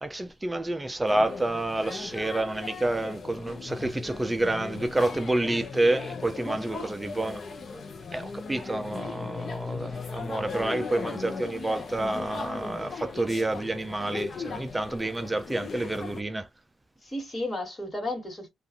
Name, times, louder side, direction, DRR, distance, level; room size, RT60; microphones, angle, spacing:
voice 1, 0.0-7.4 8.1-16.5, right 2 dB, 15° right, 0.4 m, -29 dB
sound 1, 1.1-16.2, left 5 dB, 40° left, 0.7 m, -38 dB
voice 2, 6.4-7.2 17.0-18.5, left 1 dB, 20° left, 1.7 m, -34 dB
2.5 x 2.4 x 2.6 m
cardioid pair, 90°, 0 cm